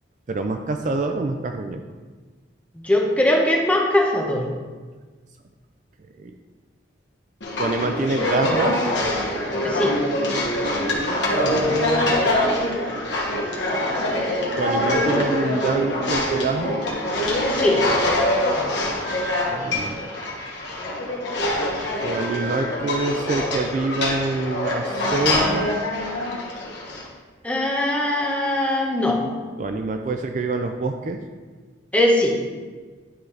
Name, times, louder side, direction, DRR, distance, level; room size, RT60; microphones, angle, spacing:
voice 1, 0.3-1.8 6.2-6.3 7.6-8.9 14.6-16.8 19.5-20.0 22.0-25.8 29.6-31.2, right 3 dB, 40° right, 5 dB, 0.3 m, -26 dB
voice 2, 2.8-4.5 9.6-10.0 17.5-17.9 27.4-29.2 31.9-32.4, left 1 dB, 5° left, -1 dB, 0.8 m, -20 dB
sound 1, 7.4-27.1, left 1 dB, 70° left, 1.2 m, -24 dB
10.5 x 3.9 x 3.3 m, 1.4 s
head